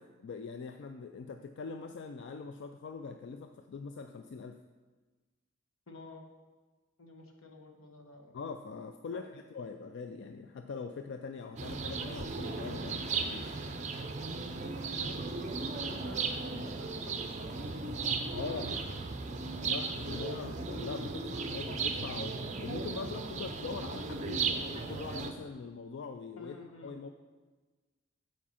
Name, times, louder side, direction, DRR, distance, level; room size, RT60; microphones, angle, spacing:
voice 1, 0.0-4.6 8.3-13.5 18.3-18.7 19.6-26.6 26.8-27.1, left 4 dB, 60° left, 6 dB, 0.3 m, -42 dB
voice 2, 5.9-6.3 7.0-8.3 9.1-9.2 14.4-15.2 15.7-19.0 19.4-20.3 26.4-26.9, left 2 dB, 80° left, 3 dB, 1.1 m, -51 dB
sound 1, 11.6-25.3, right 4 dB, 35° right, 0.6 m, -36 dB
7.4 x 4.5 x 5.7 m, 1.3 s
head